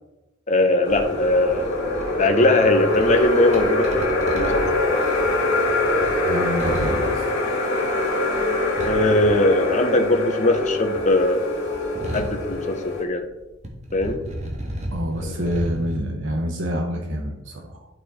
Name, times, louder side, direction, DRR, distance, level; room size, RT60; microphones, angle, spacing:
voice 1, 0.5-1.7 2.2-4.7 8.8-11.7 12.1-13.2 13.9-14.2 15.2-15.5, left 2 dB, 40° left, 4 dB, 0.9 m, -20 dB
sound 1, 0.8-13.0, left 2 dB, 65° left, 2.5 m, -24 dB
sound 2, 0.9-10.2 10.4-13.3 13.6-16.0, equal, 35° right, 1.6 m, -35 dB
voice 2, 6.2-7.2 14.9-17.9, equal, 65° right, 1 dB, 1.0 m, -27 dB
12.0 x 4.6 x 4.2 m, 0.99 s
head